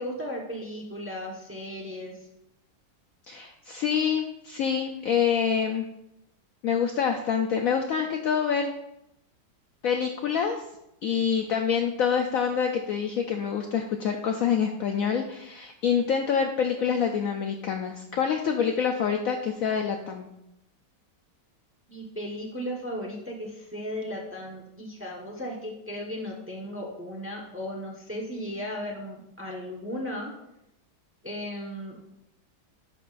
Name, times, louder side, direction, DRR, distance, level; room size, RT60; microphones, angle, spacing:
voice 1, 0.0-2.3 21.9-30.3 31.2-32.0, equal, 10° right, -2 dB, 1.0 m, -36 dB
voice 2, 3.3-5.9 6.6-8.7 9.8-10.6 11.0-20.3, left 7 dB, 70° left, 3 dB, 0.8 m, -26 dB
10.5 x 6.2 x 2.5 m, 0.85 s
omnidirectional pair, 1.9 m